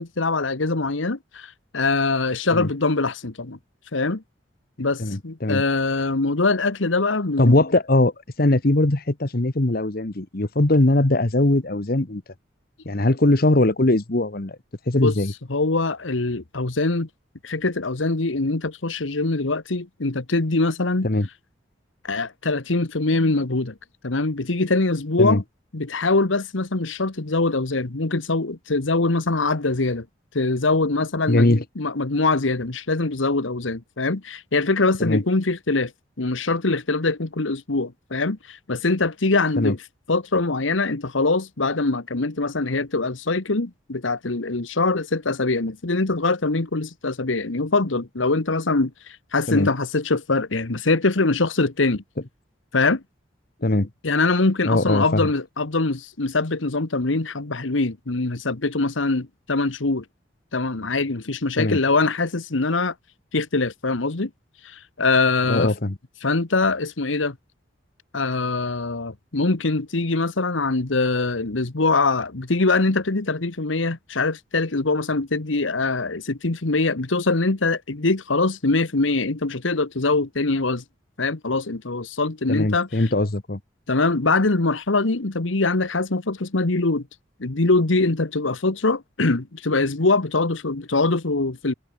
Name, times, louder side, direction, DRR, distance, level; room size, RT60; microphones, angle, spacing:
voice 1, 0.0-3.6 3.9-4.2 4.8-7.5 14.9-15.1 15.5-17.1 17.4-21.1 22.0-23.7 24.0-25.4 25.7-30.0 30.3-35.9 36.2-39.8 40.1-52.0 52.7-53.0 54.0-60.0 60.5-62.9 63.3-64.3 64.6-65.7 66.2-67.3 68.1-80.8 81.2-83.1 83.9-87.1 87.4-91.7, left 3 dB, 90° left, 1.4 m, -23 dB
voice 2, 5.0-5.6 7.4-12.2 12.8-14.6 14.9-15.3 21.0-21.3 25.2-25.4 31.3-31.6 35.0-35.2 39.6-39.7 49.5-49.7 53.6-53.9 54.6-55.3 61.6-61.8 65.5-66.0 82.5-83.6, left 1 dB, 50° left, 1.3 m, -20 dB
head